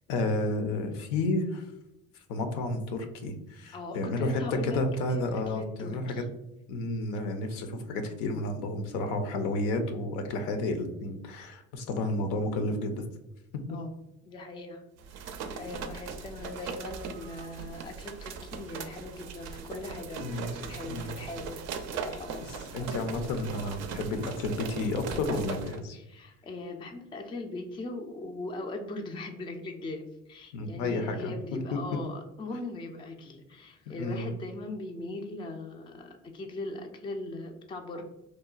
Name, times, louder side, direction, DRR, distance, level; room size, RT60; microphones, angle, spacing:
voice 1, 0.1-1.7 2.3-6.2 6.7-13.0 13.7-13.8 20.2-20.5 20.9-21.1 22.7-26.0 30.5-31.3 33.9-34.3 37.9-38.0, left 2 dB, 70° left, 7 dB, 0.5 m, -31 dB
voice 2, 3.7-4.8 5.1-6.3 13.7-13.9 14.3-14.9 15.2-22.9 25.9-38.0, left 2 dB, 15° left, 4 dB, 0.3 m, -40 dB
sound 1, 15.0-25.8, right 6 dB, 55° right, 0.4 m, -39 dB
2.9 x 2.1 x 2.3 m, 0.89 s
hypercardioid pair, 65°, 33 cm